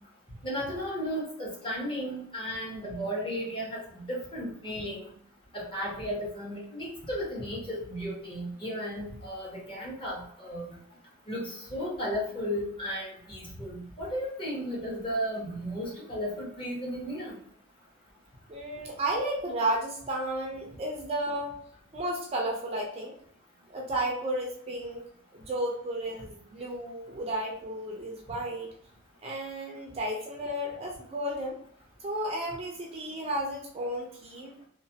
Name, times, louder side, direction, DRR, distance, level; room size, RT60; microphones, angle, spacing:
voice 1, 0.4-5.1 5.5-10.7 11.3-17.3, equal, 25° left, -4 dB, 0.9 m, -34 dB
voice 2, 18.5-21.5 21.9-23.2 23.7-25.0 25.3-28.7 29.2-31.6 32.0-34.5, right 1 dB, 30° right, -1 dB, 0.4 m, -33 dB
3.0 x 2.1 x 2.7 m, 0.63 s
head